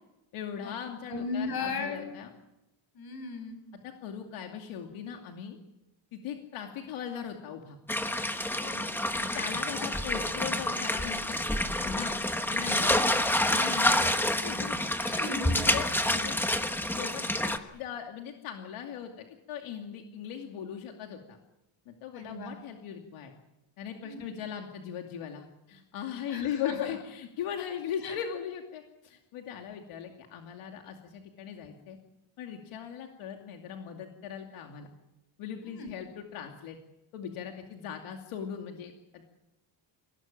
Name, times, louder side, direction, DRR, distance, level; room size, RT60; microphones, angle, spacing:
voice 1, 0.3-2.3 3.8-5.6 6.1-7.8 9.3-11.4 11.8-12.2 12.5-14.1 14.4-15.1 15.7-16.4 17.0-21.4 21.9-23.3 23.8-32.0 32.4-34.9 35.4-36.8 37.1-39.2, left 8 dB, 85° left, 3 dB, 2.6 m, -39 dB
voice 2, 1.1-2.0 2.9-3.6 8.5-9.4 9.7-9.9 13.1-13.2 14.8-15.7 16.1-16.2 22.1-22.6 24.0-24.2 26.3-26.8 28.0-28.2 35.6-35.9, left 4 dB, 50° left, 7 dB, 6.3 m, -37 dB
sound 1, 7.9-17.6, left 1 dB, 5° left, 1.1 m, -28 dB
26.5 x 18.0 x 8.9 m, 0.93 s
cardioid pair, 175°, 48 cm